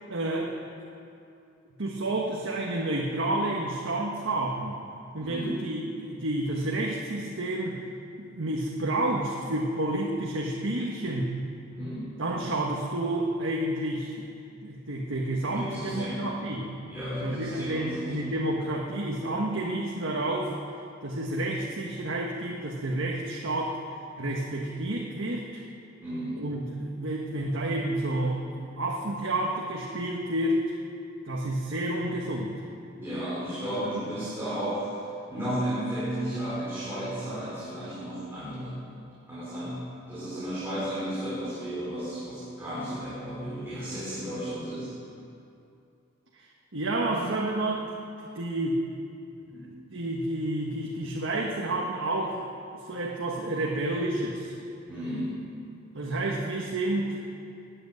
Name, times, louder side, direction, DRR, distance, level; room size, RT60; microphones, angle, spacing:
voice 1, 0.1-0.7 1.8-4.8 5.1-7.8 8.2-11.4 12.2-14.3 14.6-16.7 17.2-20.5 21.0-23.8 24.2-25.6 26.4-30.6 31.3-32.5 46.3-46.5 46.7-47.9 48.3-48.8 49.9-52.5 52.9-54.6 55.9-57.2, right 1 dB, 75° right, -2 dB, 1.4 m, -30 dB
voice 2, 5.2-5.5 11.7-12.1 15.3-16.2 16.9-18.3 26.0-26.4 33.0-35.0 35.3-38.8 39.3-44.9 49.5-49.7 54.9-55.3, equal, 10° right, -11 dB, 4.6 m, -33 dB
20.0 x 8.1 x 8.1 m, 2.6 s
head